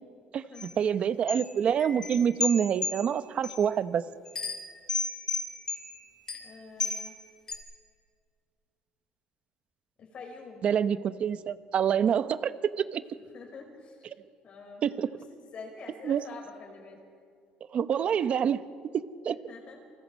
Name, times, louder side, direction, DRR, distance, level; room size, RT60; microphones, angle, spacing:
sound 1, 0.6-0.7 1.3-3.6 4.3-7.1 7.5-7.6, left 4 dB, 25° left, 3.1 m, -34 dB
voice 1, 0.8-4.0 10.6-13.0 14.8-15.1 16.0-16.2 17.7-18.6 18.9-19.4, right 8 dB, 40° right, 13 dB, 0.9 m, -26 dB
voice 2, 6.4-7.2 10.0-10.7 13.2-14.1 14.4-17.0 19.3-19.8, left 4 dB, 45° left, 2 dB, 5.7 m, -47 dB
29.0 x 25.5 x 5.4 m, 2.3 s
cardioid pair, 135°, 3 cm